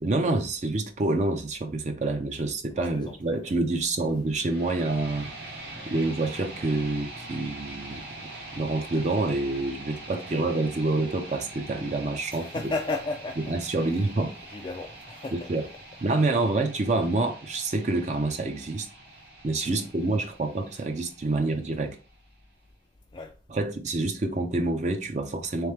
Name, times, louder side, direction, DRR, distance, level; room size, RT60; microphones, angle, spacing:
voice 1, 0.0-5.3 5.9-8.0 8.6-12.7 13.5-14.3 15.3-15.6 16.0-18.9 19.4-22.0 23.5-25.7, right 2 dB, 40° right, 0.4 m, -27 dB
voice 2, 2.7-3.5 12.3-13.6 13.8-14.1 14.5-15.5 19.6-19.9 23.1-23.3, left 3 dB, 25° left, 0.3 m, -35 dB
sound 1, 4.3-22.3, right 2 dB, 70° right, 1.1 m, -44 dB
3.5 x 3.1 x 3.3 m
head